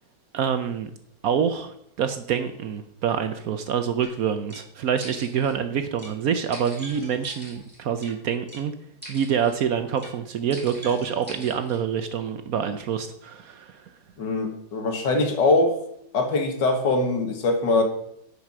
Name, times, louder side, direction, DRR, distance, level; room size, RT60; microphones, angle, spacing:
voice 1, 0.3-0.9 1.2-8.7 9.1-13.8, right 7 dB, 65° right, 9 dB, 1.0 m, -26 dB
sound 1, 4.0-4.1 4.5-4.6 5.0-5.5 6.0-6.1 6.5-8.1 8.5-8.6 9.0-9.5 10.0-10.1 10.5-11.8, right 1 dB, 5° right, 3.3 m, -42 dB
voice 2, 14.2-15.8 16.1-17.8, left 3 dB, 75° left, 4 dB, 2.1 m, -22 dB
9.3 x 5.8 x 6.0 m, 0.74 s
omnidirectional pair, 1.9 m